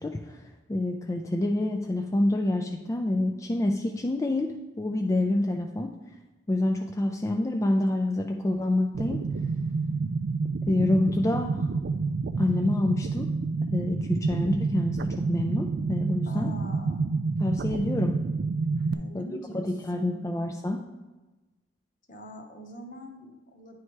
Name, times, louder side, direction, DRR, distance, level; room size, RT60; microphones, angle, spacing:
voice 1, 0.0-5.9 6.5-9.2 10.7-11.7 12.4-13.3 13.7-16.5 17.4-18.2 19.1-19.2 19.5-20.8, left 1 dB, 15° left, 2 dB, 0.3 m, -27 dB
sound 1, 8.9-18.9, right 4 dB, 60° right, 0.3 m, -29 dB
voice 2, 16.3-17.1 18.9-20.3 22.1-23.8, equal, 50° left, 3 dB, 0.9 m, -43 dB
9.5 x 3.2 x 4.6 m, 1.1 s
head